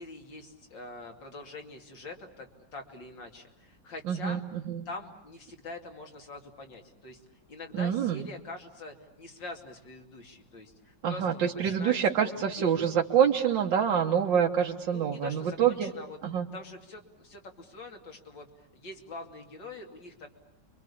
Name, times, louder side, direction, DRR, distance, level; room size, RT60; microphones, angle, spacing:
voice 1, 0.0-4.4 4.9-7.2 7.5-12.8 14.9-16.2 16.5-20.3, left 3 dB, 85° left, 3 dB, 3.4 m, -44 dB
voice 2, 4.1-4.4 4.7-4.8 7.7-8.2 11.0-15.9 16.2-16.5, right 8 dB, 90° right, 0 dB, 1.9 m, -26 dB
29.5 x 23.5 x 8.6 m, 0.81 s
omnidirectional pair, 1.9 m